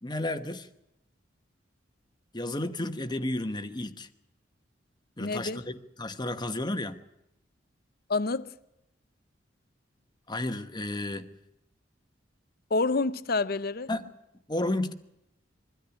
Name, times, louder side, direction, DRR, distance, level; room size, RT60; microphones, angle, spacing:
voice 1, 0.0-0.7 2.3-4.1 5.2-7.0 10.3-11.3 13.9-14.1 14.5-14.9, left 1 dB, 25° left, 1.1 m, -32 dB
voice 2, 5.2-5.6 8.1-8.5 12.7-13.9, left 3 dB, 55° left, 0.8 m, -28 dB
23.0 x 13.5 x 10.0 m
head